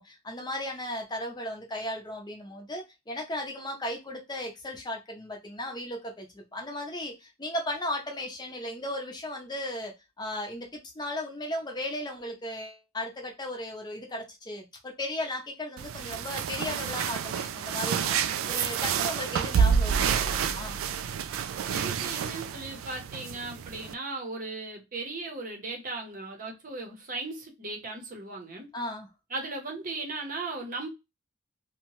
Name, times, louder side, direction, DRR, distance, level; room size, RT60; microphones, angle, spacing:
voice 1, 0.0-18.2 18.5-20.8 28.7-29.1, left 1 dB, 20° left, 0.6 m, -36 dB
sound 1, 15.8-23.9, right 7 dB, 90° right, 0.3 m, -29 dB
voice 2, 21.6-28.7 29.3-30.9, right 3 dB, 45° right, 0.8 m, -37 dB
2.7 x 2.2 x 3.0 m
head